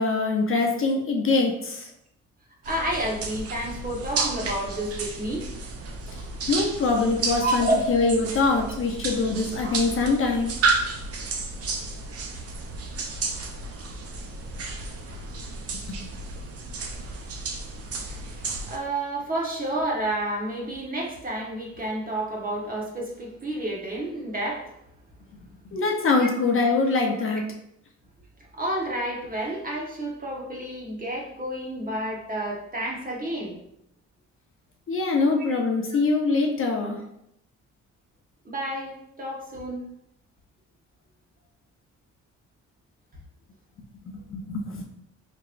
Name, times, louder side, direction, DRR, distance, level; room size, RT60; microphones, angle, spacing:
voice 1, 0.0-1.9 6.5-10.5 16.0-16.1 25.7-27.4 34.9-37.0 44.1-44.8, left 3 dB, 45° left, 1 dB, 0.7 m, -23 dB
voice 2, 2.6-5.4 7.4-8.0 18.0-18.2 18.6-24.7 26.2-26.3 27.3-27.4 28.5-33.5 38.4-39.8, right 1 dB, 30° right, -2 dB, 1.1 m, -30 dB
sound 1, 2.6-18.8, right 3 dB, 50° right, 0.6 m, -32 dB
4.5 x 2.9 x 2.5 m, 0.77 s
cardioid pair, 90°, 30 cm